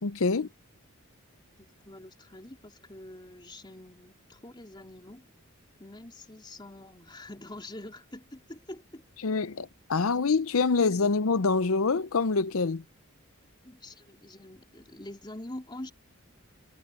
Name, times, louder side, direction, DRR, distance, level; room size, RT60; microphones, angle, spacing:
voice 1, 0.0-0.5 9.2-12.8, left 4 dB, 70° left, 0.7 m, -26 dB
voice 2, 1.6-5.3 5.8-9.0 13.6-15.9, left 1 dB, 20° left, 3.5 m, -45 dB
head